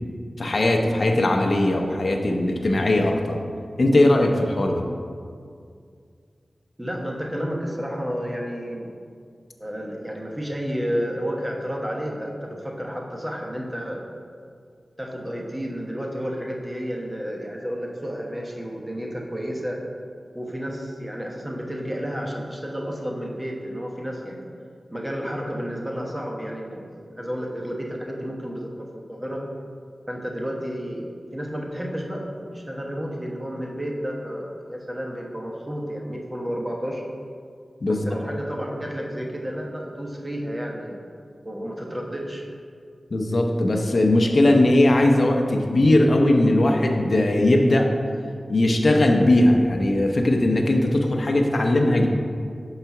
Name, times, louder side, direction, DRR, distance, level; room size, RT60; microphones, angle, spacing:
voice 1, 0.4-3.4 3.8-4.8 37.8-38.0 43.1-47.9 48.5-52.1, left 1 dB, 60° left, 2 dB, 0.6 m, -19 dB
voice 2, 6.8-8.9 9.6-14.0 15.0-19.8 20.3-24.5 24.9-29.4 30.1-31.1 31.3-37.0 37.9-41.0 41.4-42.5, equal, 15° right, -1 dB, 1.1 m, -31 dB
5.5 x 4.0 x 5.8 m, 2.2 s
cardioid pair, 50°, 0 cm